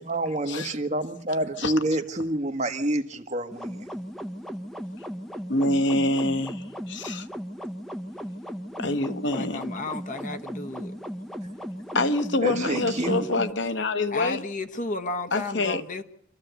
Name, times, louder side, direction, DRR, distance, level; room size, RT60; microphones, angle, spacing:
voice 1, 0.0-3.8 12.4-13.2, right 1 dB, 35° right, 1.5 m, -28 dB
sound 1, 3.5-13.5, equal, ahead, 1.1 m, -36 dB
voice 2, 5.5-7.3 8.8-9.6 11.9-14.4 15.3-15.8, left 2 dB, 65° left, 1.2 m, -26 dB
voice 3, 9.3-10.9 14.1-16.0, left 2 dB, 40° left, 1.2 m, -33 dB
26.5 x 14.0 x 8.1 m
head